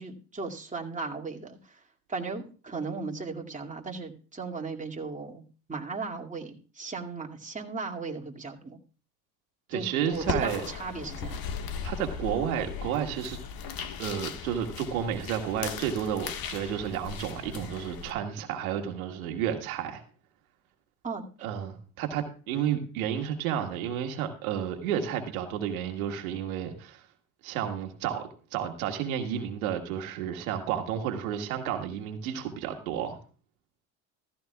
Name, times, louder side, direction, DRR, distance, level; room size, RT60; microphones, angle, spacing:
voice 1, 0.0-1.8 2.1-5.4 5.7-8.8 9.7-11.4 21.0-21.2, right 4 dB, 20° right, 0 dB, 2.4 m, -36 dB
voice 2, 9.7-10.6 11.8-13.4 14.0-20.0 21.4-27.0 27.4-33.2, right 9 dB, 90° right, 4 dB, 1.8 m, -31 dB
sound 1, 10.1-18.1, left 7 dB, 60° left, 1.7 m, -37 dB
15.0 x 15.0 x 2.4 m, 0.38 s
hypercardioid pair, 70°, 41 cm